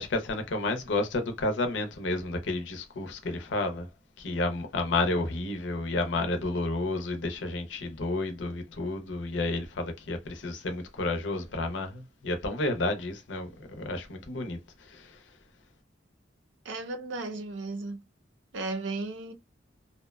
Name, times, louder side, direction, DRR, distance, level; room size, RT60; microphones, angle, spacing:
voice 1, 0.0-3.9 4.2-15.2, left 2 dB, 75° left, 0.6 m, -31 dB
voice 2, 16.6-18.0 18.5-19.3, right 3 dB, 80° right, 0.5 m, -35 dB
2.7 x 2.1 x 2.2 m
head